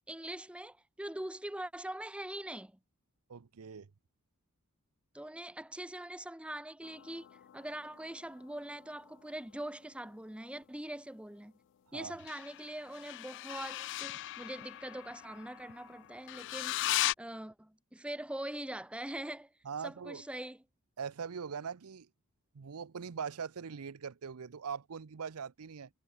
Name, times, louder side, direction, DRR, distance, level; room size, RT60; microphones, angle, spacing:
voice 1, 0.1-2.8 5.1-11.5 11.9-16.8 17.2-19.5 19.8-20.6, right 1 dB, 5° right, 0.7 m, -43 dB
voice 2, 3.3-3.9 11.9-12.2 19.6-20.2 21.0-22.1 22.5-25.9, right 6 dB, 80° right, 0.6 m, -41 dB
sound 1, 6.8-9.9 12.2-17.1, left 15 dB, 55° left, 0.3 m, -39 dB
head